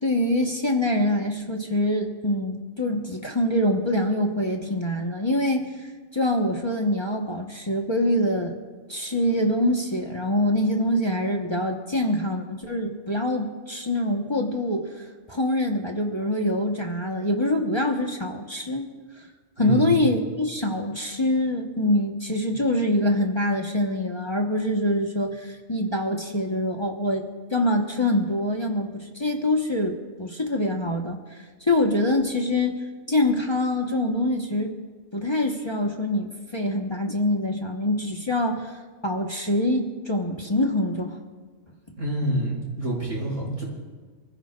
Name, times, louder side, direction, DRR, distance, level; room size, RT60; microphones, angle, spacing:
voice 1, 0.0-8.6 8.9-19.2 19.6-27.2 27.5-34.7 35.1-38.7 39.0-41.2, left 1 dB, 25° left, 0 dB, 1.2 m, -25 dB
voice 2, 19.6-20.0 42.0-43.6, right 1 dB, 85° right, -6 dB, 6.2 m, -27 dB
28.0 x 15.5 x 2.5 m, 1.4 s
omnidirectional pair, 1.3 m